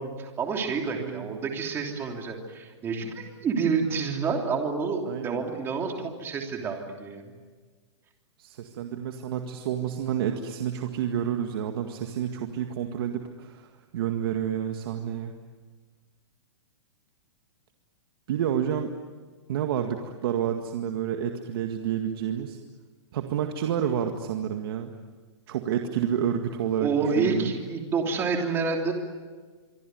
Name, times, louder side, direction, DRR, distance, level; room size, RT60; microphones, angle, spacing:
voice 1, 0.0-7.3 26.8-28.9, right 5 dB, 15° right, 2 dB, 3.2 m, -28 dB
voice 2, 0.9-1.3 5.1-5.4 8.4-15.3 18.3-18.9 19.5-22.6 23.1-24.9 25.5-27.5, right 9 dB, 50° right, 4 dB, 2.0 m, -29 dB
25.5 x 25.0 x 9.4 m, 1.4 s
hypercardioid pair, 165°, 15 cm